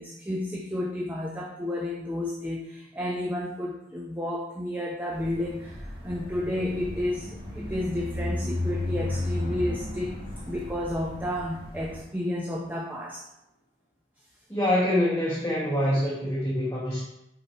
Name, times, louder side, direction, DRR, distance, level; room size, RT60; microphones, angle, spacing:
voice 1, 0.0-10.2 10.5-13.3, left 1 dB, 10° right, -2 dB, 0.6 m, -31 dB
sound 1, 5.1-12.0, left 1 dB, 25° right, 1.3 m, -34 dB
sound 2, 9.0-13.1, equal, 45° left, 1.0 m, -47 dB
voice 2, 14.5-17.0, left 1 dB, 15° left, -6 dB, 1.0 m, -25 dB
5.7 x 4.1 x 4.5 m, 0.86 s
head